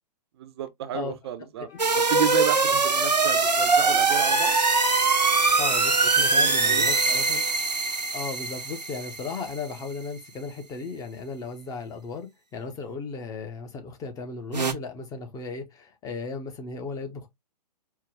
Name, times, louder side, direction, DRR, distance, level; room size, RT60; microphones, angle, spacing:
voice 1, 0.4-1.7 2.1-4.6 6.3-6.9, right 9 dB, 40° right, 0.5 m, -31 dB
Wind instrument woodwind instrument, 1.6-9.7, left 7 dB, 45° left, 2.1 m, -49 dB
sound 1, 1.8-9.6 14.5-14.7, right 4 dB, 85° right, 0.7 m, -22 dB
Wind instrument woodwind instrument 2, 4.1-7.6, left 1 dB, 60° left, 2.6 m, -33 dB
voice 2, 5.6-7.4 8.1-17.3, left 4 dB, 15° left, 0.8 m, -36 dB
4.6 x 2.2 x 3.4 m
figure-of-eight pair, 115°, 21 cm